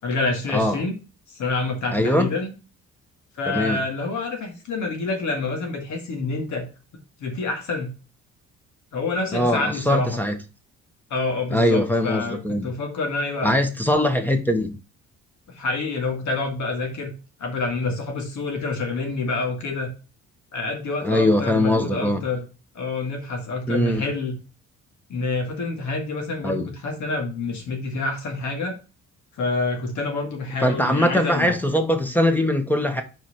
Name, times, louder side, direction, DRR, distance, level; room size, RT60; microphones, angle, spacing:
voice 1, 0.0-1.0 1.3-2.5 3.4-6.7 7.2-7.9 8.9-10.2 11.1-13.6 15.5-17.1 17.4-19.9 20.5-22.4 22.7-24.4 25.1-28.8 29.4-31.5, left 3 dB, 70° left, 2.1 m, -27 dB
voice 2, 1.9-2.3 3.5-3.8 9.3-10.4 11.5-12.7 13.4-14.8 21.0-22.2 23.7-24.1 26.4-26.7 30.6-33.0, left 1 dB, 5° left, 1.1 m, -21 dB
4.7 x 4.6 x 5.7 m
cardioid pair, 90°, 30 cm